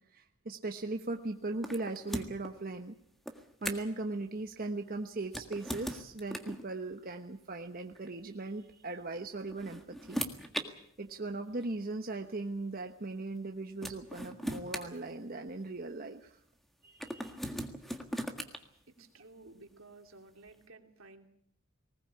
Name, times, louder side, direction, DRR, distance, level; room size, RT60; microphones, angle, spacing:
voice 1, 0.1-3.0 3.6-10.2 11.0-16.4 16.8-17.4, right 2 dB, 45° right, 4 dB, 1.1 m, -39 dB
sound 1, 1.6-2.5 3.3-4.0 5.2-6.6 7.9-8.1 9.2-10.7 11.6-11.7 13.4-13.5 13.8-15.7 17.0-18.6, equal, ahead, 1.7 m, -39 dB
voice 2, 18.9-21.3, right 2 dB, 80° right, 4 dB, 2.9 m, -55 dB
20.0 x 19.5 x 8.5 m, 0.68 s
head